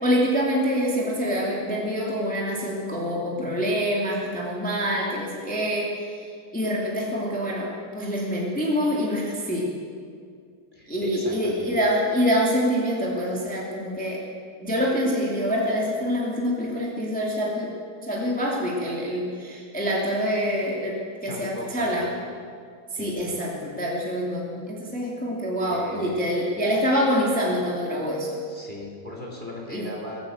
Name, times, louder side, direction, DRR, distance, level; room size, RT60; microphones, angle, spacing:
voice 1, 0.0-5.9 6.5-9.7 10.9-14.2 14.6-17.7 18.0-22.1 23.0-28.4 29.7-29.8, equal, 5° left, -4 dB, 2.2 m, -26 dB
voice 2, 10.7-11.7 21.3-22.3 22.9-23.1 25.7-26.5 28.5-30.2, left 1 dB, 20° right, -2 dB, 2.7 m, -38 dB
20.0 x 9.2 x 7.8 m, 2.2 s
omnidirectional pair, 2.3 m